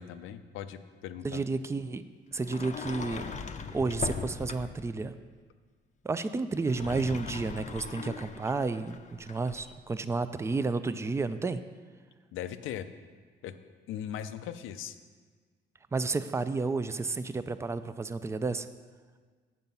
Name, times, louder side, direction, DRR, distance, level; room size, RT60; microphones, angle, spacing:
voice 1, 0.0-1.4 12.3-12.9 13.4-13.5 13.9-15.0, left 10 dB, 85° left, 11 dB, 0.5 m, -39 dB
voice 2, 1.2-2.0 2.3-3.3 3.7-5.2 6.0-11.6 15.9-18.7, right 3 dB, 15° right, 12 dB, 0.4 m, -31 dB
Sliding door, 2.4-4.9 6.5-9.7, left 5 dB, 35° left, 0.6 m, -39 dB
7.5 x 7.0 x 5.4 m, 1.5 s
cardioid pair, 90°, 20 cm